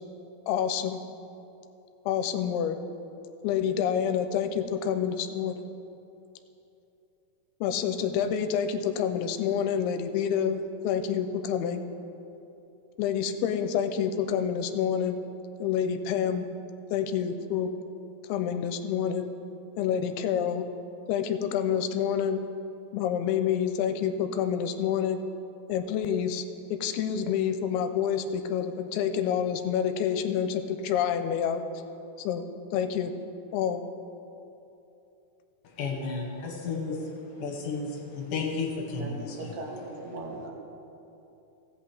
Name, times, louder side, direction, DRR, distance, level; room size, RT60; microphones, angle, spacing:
voice 1, 0.5-1.0 2.1-2.8 3.4-5.6 7.6-11.8 13.0-15.2 15.6-16.5 16.9-17.7 18.3-19.3 19.8-20.6 21.1-22.4 22.9-25.2 25.7-26.5 26.7-31.6 32.2-33.1 33.5-33.8, left 8 dB, 85° left, 8 dB, 2.5 m, -28 dB
voice 2, 35.8-39.2, left 4 dB, 70° left, 0 dB, 2.5 m, -32 dB
voice 3, 39.0-40.5, right 2 dB, 85° right, -2 dB, 3.4 m, -39 dB
16.0 x 8.2 x 3.3 m, 2.9 s
omnidirectional pair, 4.5 m